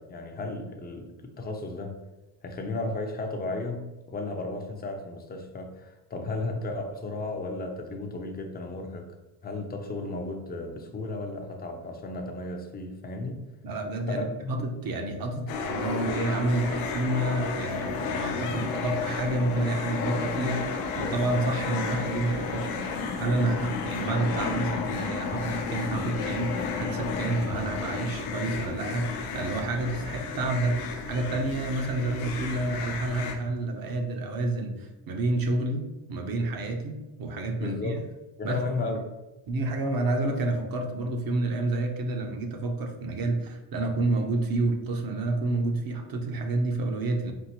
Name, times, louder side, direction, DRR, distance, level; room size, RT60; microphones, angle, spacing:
voice 1, 0.0-2.0 2.4-9.1 9.4-13.4 14.1-14.3 37.6-38.0 38.4-39.0, left 2 dB, 20° left, 3 dB, 0.6 m, -34 dB
voice 2, 13.6-22.9 23.2-38.0 38.4-38.9 39.5-47.3, right 2 dB, 45° right, 4 dB, 0.8 m, -29 dB
sound 1, 15.5-33.4, left 5 dB, 90° left, 0.8 m, -32 dB
5.4 x 2.5 x 2.9 m, 1.0 s
cardioid pair, 105°, 50 cm